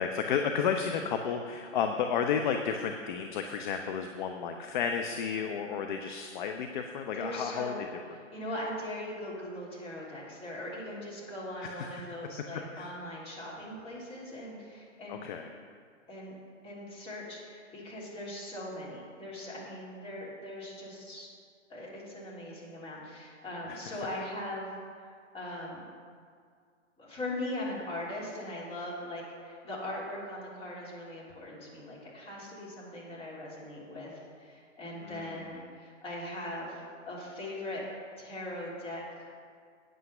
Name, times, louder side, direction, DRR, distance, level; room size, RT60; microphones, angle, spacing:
voice 1, 0.0-7.7 11.6-12.0 12.7-12.9 15.1-15.5 23.7-24.0 35.0-35.5, left 7 dB, 40° left, 5 dB, 0.7 m, -32 dB
voice 2, 7.1-7.8 8.3-15.2 16.1-16.4 16.6-21.3 21.7-25.8 27.0-37.9 38.2-39.3, left 1 dB, 15° left, -6 dB, 3.2 m, -40 dB
9.1 x 8.6 x 6.7 m, 2.1 s
hypercardioid pair, 135°, 38 cm